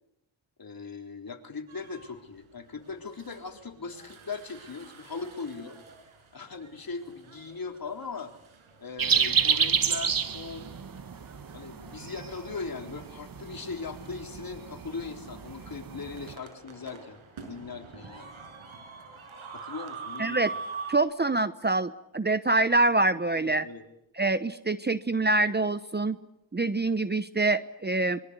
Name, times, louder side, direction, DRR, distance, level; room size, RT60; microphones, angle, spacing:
voice 1, 0.6-5.8 6.3-8.3 8.8-10.7 11.5-17.2 17.5-18.3 19.5-20.4 23.4-23.8, left 4 dB, 45° left, 4 dB, 3.9 m, -39 dB
sound 1, 1.7-2.2 2.7-21.0, right 5 dB, 85° right, 6.0 m, -46 dB
sound 2, 9.0-16.4, right 6 dB, 45° right, 1.3 m, -30 dB
voice 2, 20.2-20.5 20.9-23.7 24.2-26.2 26.5-28.2, right 2 dB, 20° right, 13 dB, 0.9 m, -25 dB
25.5 x 23.0 x 8.2 m, 0.84 s
cardioid pair, 75°, 47 cm